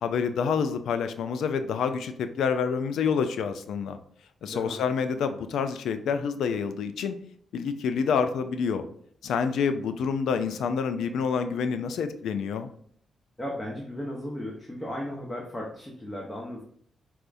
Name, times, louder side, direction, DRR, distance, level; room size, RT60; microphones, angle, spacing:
voice 1, 0.0-4.0 4.4-7.2 7.5-8.8 9.2-12.7, left 6 dB, 80° left, 9 dB, 0.3 m, -27 dB
voice 2, 4.5-4.8 13.4-16.6, left 1 dB, 20° left, -2 dB, 0.8 m, -35 dB
4.4 x 2.1 x 2.5 m, 0.63 s
supercardioid pair, 55°, 0 cm